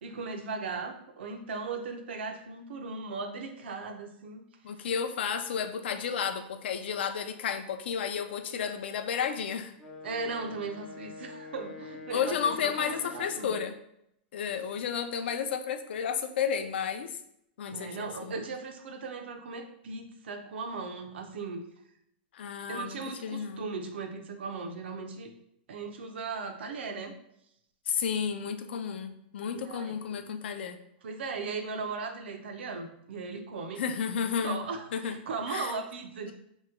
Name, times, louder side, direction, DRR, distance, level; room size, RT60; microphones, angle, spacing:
voice 1, 0.0-4.4 10.0-13.6 17.7-21.6 22.7-25.3 25.7-27.1 29.6-30.2 31.0-33.8 34.4-36.3, right 4 dB, 85° right, 5 dB, 0.5 m, -37 dB
voice 2, 4.6-9.7 12.1-13.8 14.3-17.2 17.6-18.3 22.3-23.6 27.9-30.8 33.8-34.6 34.9-35.2 35.5-35.7 36.3-36.4, left 7 dB, 75° left, 8 dB, 0.4 m, -32 dB
Wind instrument woodwind instrument, 9.8-13.8, left 4 dB, 5° left, 0.4 m, -45 dB
3.0 x 2.2 x 3.6 m, 0.76 s
supercardioid pair, 165°, 6 cm